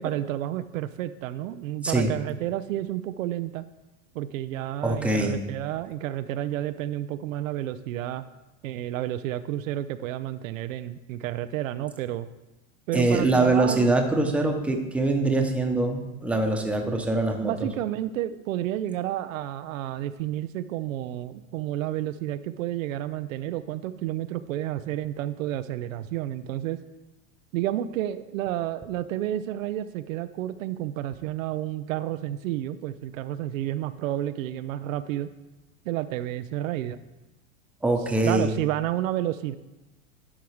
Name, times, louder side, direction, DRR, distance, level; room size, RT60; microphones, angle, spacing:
voice 1, 0.0-3.6 4.1-8.2 8.6-12.3 12.9-14.0 17.4-26.8 27.5-35.3 35.9-37.0 38.2-39.5, right 13 dB, 70° right, 11 dB, 0.6 m, -30 dB
voice 2, 4.8-5.4 12.9-17.7 37.8-38.5, right 2 dB, 5° right, 3 dB, 0.9 m, -23 dB
11.0 x 4.6 x 4.8 m, 1.0 s
hypercardioid pair, 115°, 41 cm